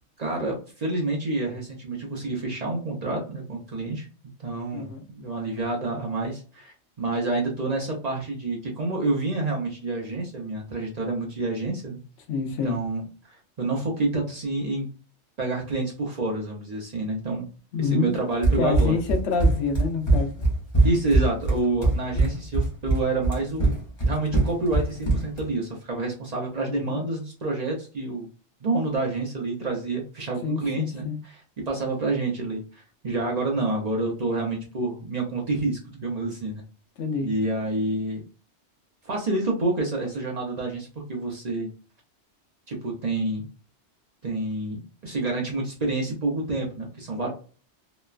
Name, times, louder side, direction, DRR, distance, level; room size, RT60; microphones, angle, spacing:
voice 1, 0.2-4.1 4.4-12.0 12.6-13.0 13.6-14.9 15.4-17.5 17.8-18.9 20.8-28.3 28.6-31.1 31.7-36.6 37.2-38.2 39.0-41.7 42.7-43.5 44.2-47.3, right 2 dB, 45° right, -1 dB, 0.6 m, -28 dB
voice 2, 4.7-5.1 12.3-12.8 17.7-18.1 18.6-20.5 26.7-27.0 30.4-31.2 37.0-37.3, left 4 dB, 85° left, 4 dB, 1.0 m, -27 dB
Run, 18.4-25.5, right 2 dB, 25° left, 0.9 m, -22 dB
3.0 x 2.2 x 2.3 m, 0.37 s
omnidirectional pair, 1.2 m